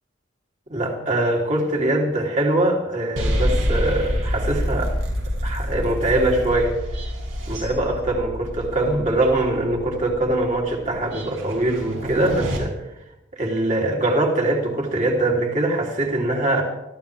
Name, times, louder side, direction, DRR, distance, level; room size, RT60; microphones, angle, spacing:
voice 1, 0.7-4.9 5.4-6.8 7.5-12.7 13.3-16.6, right 1 dB, 35° right, -1 dB, 3.5 m, -22 dB
sound 1, 3.2-12.6, equal, 90° right, 6.3 m, -27 dB
25.0 x 14.5 x 3.6 m, 0.95 s
head